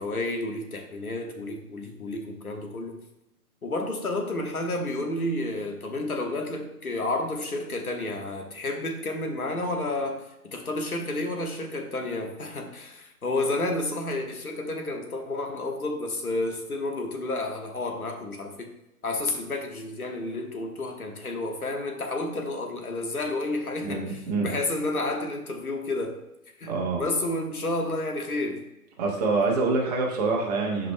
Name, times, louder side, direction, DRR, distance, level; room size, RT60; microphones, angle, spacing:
voice 1, 0.0-3.0 3.6-18.7 19.0-26.2 26.6-28.6, left 2 dB, 70° left, 3 dB, 1.3 m, -31 dB
voice 2, 23.8-24.5 26.7-27.0 29.0-30.9, right 3 dB, 25° right, -1 dB, 1.2 m, -26 dB
10.5 x 5.2 x 2.2 m, 0.92 s
figure-of-eight pair, 130°, 45 cm